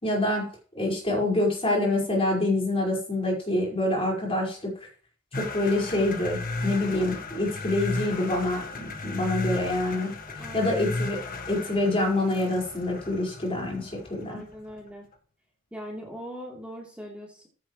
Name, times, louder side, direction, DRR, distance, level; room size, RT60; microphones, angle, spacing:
voice 1, 0.0-4.7 5.3-10.1 10.5-11.2 11.5-14.4, left 2 dB, 25° left, -2 dB, 5.2 m, -26 dB
sound 1, 5.3-14.7, left 2 dB, 45° left, 1.5 m, -35 dB
voice 2, 10.4-10.8 14.3-15.0 15.7-17.5, equal, 5° right, -4 dB, 3.4 m, -40 dB
15.0 x 11.0 x 3.2 m, 0.42 s
head